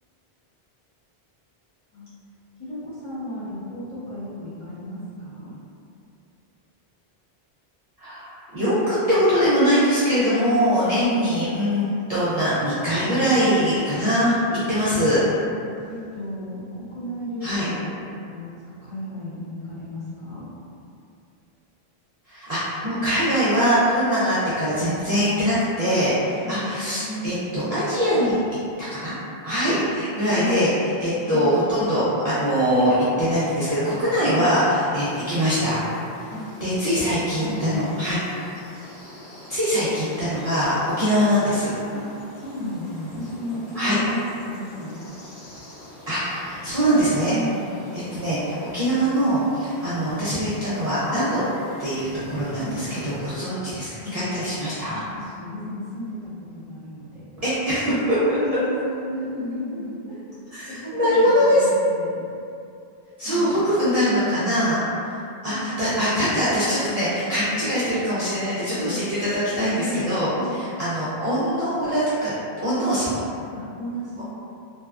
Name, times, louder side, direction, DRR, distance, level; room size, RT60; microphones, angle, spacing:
voice 1, 2.6-5.5 10.9-11.2 14.3-14.5 14.9-15.2 15.4-15.5 15.9-20.5 24.8-25.3 26.4-27.6 30.4-30.6 31.3-31.5 34.2-34.5 36.3-36.4 37.4-38.1 41.9-42.0 42.4-44.9 47.3-47.6 52.5-53.1 54.0-54.1 55.1-57.2 57.9-60.2 60.7-62.2 63.2-63.6 63.9-64.4 65.5-66.4 68.7-69.0 69.7-70.5 73.5-74.2, left 1 dB, 35° left, -13 dB, 0.8 m, -33 dB
voice 2, 8.0-14.4 14.7-15.2 17.4-17.7 22.3-28.4 28.8-29.2 29.4-30.7 31.0-35.8 36.6-38.2 39.5-41.7 43.7-44.0 46.1-47.4 47.9-51.4 51.8-55.0 57.4-57.9 58.3-58.4 60.5-61.7 63.2-72.3 72.6-73.2 74.2-74.3, equal, 50° right, -12 dB, 0.5 m, -22 dB
sound 1, 34.9-53.2, left 1 dB, 80° left, 0.9 m, -43 dB
2.7 x 2.2 x 2.3 m, 2.6 s
omnidirectional pair, 1.1 m